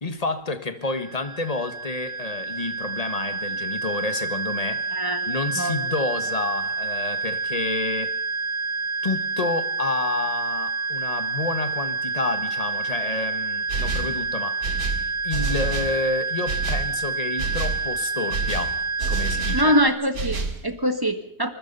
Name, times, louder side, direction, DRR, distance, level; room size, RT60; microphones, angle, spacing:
voice 1, 0.0-4.9 5.2-8.1 9.0-14.6 15.2-18.8 19.1-19.8, left 3 dB, 25° left, 1.4 m, -29 dB
sound 1, 0.8-19.9, right 4 dB, 55° right, 2.2 m, -28 dB
sound 2, 13.7-14.2 14.6-16.0 16.5-16.9 17.4-17.8 18.3-19.7 20.1-20.6, right 4 dB, 75° right, 2.5 m, -28 dB
voice 2, 19.5-21.5, equal, 15° right, 1.6 m, -23 dB
25.0 x 21.0 x 5.6 m
omnidirectional pair, 1.6 m